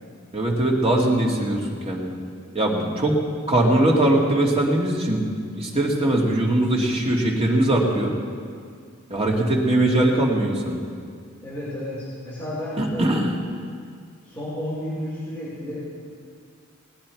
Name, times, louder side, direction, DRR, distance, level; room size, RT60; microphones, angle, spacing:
voice 1, 0.3-2.2 2.5-3.2 3.5-5.2 5.6-8.1 9.1-10.8 12.8-13.3, right 1 dB, 30° right, -2 dB, 2.0 m, -21 dB
voice 2, 11.4-13.1 14.2-15.8, left 1 dB, 10° left, -11 dB, 4.1 m, -32 dB
19.0 x 9.3 x 4.5 m, 2.2 s
head